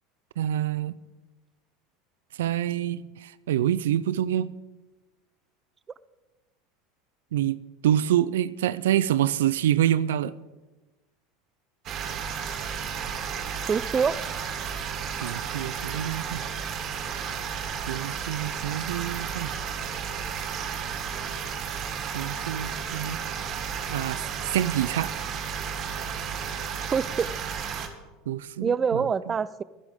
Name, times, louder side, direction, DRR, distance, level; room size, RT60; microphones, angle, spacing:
voice 1, 0.4-1.0 2.4-4.5 7.3-10.3 15.2-16.5 17.8-19.5 22.1-23.2 23.9-25.1 28.3-29.3, right 11 dB, 80° right, 0.5 m, -27 dB
sound 1, 11.9-27.9, right 7 dB, 50° right, 2.0 m, -33 dB
voice 2, 13.7-14.2 26.9-27.3 28.6-29.6, right 6 dB, 30° right, 0.6 m, -25 dB
23.5 x 11.0 x 3.7 m
hypercardioid pair, 85°, 0 cm